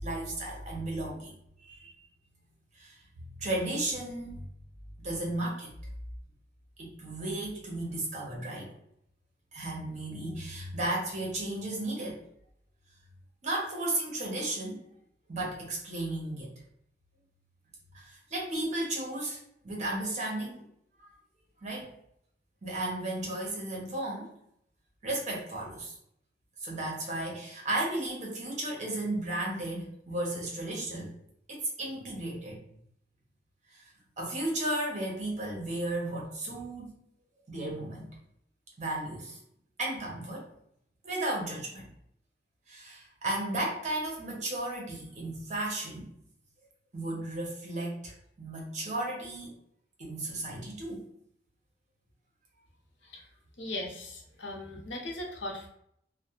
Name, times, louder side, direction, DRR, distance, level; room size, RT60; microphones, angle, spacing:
voice 1, 0.0-1.3 1.6-2.1 2.8-3.0 3.4-4.4 5.0-5.7 6.8-8.7 9.5-12.2 13.4-14.9 15.3-16.5 17.9-20.6 21.6-21.9 22.6-24.3 25.0-26.0 26.6-31.1 31.5-32.6 33.7-33.8 34.2-36.9 37.5-38.1 38.8-39.4 39.8-40.5 41.0-41.8 42.7-46.1 46.9-49.5 50.0-51.0, right 1 dB, 40° right, -2 dB, 0.8 m, -34 dB
voice 2, 53.6-55.7, left 1 dB, 85° left, 1 dB, 0.6 m, -38 dB
2.3 x 2.1 x 2.8 m, 0.72 s
head